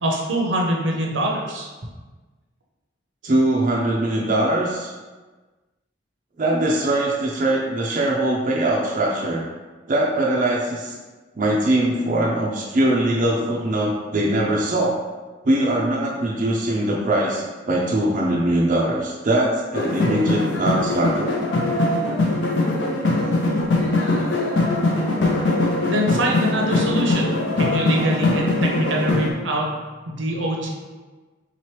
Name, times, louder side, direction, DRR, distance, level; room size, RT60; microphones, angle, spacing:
voice 1, 0.0-1.7 25.8-27.3 27.6-29.7 30.1-30.7, right 1 dB, 80° right, 0 dB, 0.7 m, -24 dB
voice 2, 3.2-4.9 6.4-9.5 9.9-10.9 11.4-15.0 15.4-21.4, right 1 dB, 40° right, -3 dB, 0.4 m, -21 dB
sound 1, 19.7-29.3, left 2 dB, 70° left, 0.6 m, -21 dB
4.0 x 2.9 x 3.1 m, 1.3 s
head